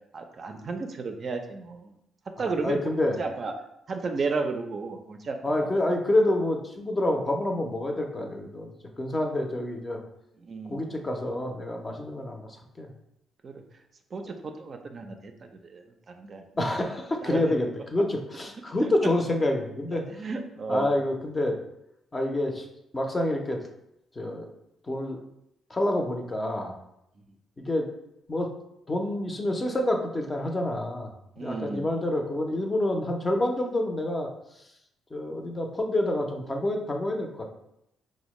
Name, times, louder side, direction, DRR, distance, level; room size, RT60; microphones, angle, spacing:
voice 1, 0.1-1.9 2.4-2.8 3.2-3.5 3.9-5.7 10.4-10.8 13.4-13.6 14.1-16.4 17.2-17.6 18.8-18.9 20.2-21.0 31.4-32.0, right 4 dB, 45° right, 5 dB, 0.4 m, -33 dB
voice 2, 2.4-3.2 5.4-8.7 9.0-10.0 10.7-12.5 12.8-12.9 16.6-20.0 20.7-21.6 22.1-22.7 22.9-23.6 24.2-24.5 24.9-25.2 25.7-26.7 27.6-27.9 28.3-28.5 28.9-34.3 35.1-37.5, left 1 dB, 25° left, 3 dB, 0.5 m, -27 dB
4.2 x 2.1 x 3.0 m, 0.81 s
cardioid pair, 90°, 0 cm